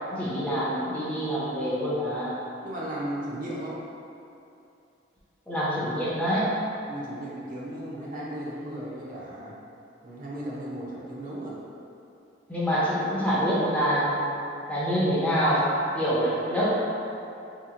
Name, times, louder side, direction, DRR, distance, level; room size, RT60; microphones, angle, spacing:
voice 1, 0.1-2.3 5.5-6.5 12.5-14.2 14.7-15.7 15.9-16.7, equal, 5° left, -9 dB, 0.6 m, -26 dB
voice 2, 2.6-3.8 6.9-9.6 10.0-11.5, right 1 dB, 45° right, -6 dB, 0.6 m, -35 dB
2.9 x 2.5 x 3.7 m, 2.7 s
head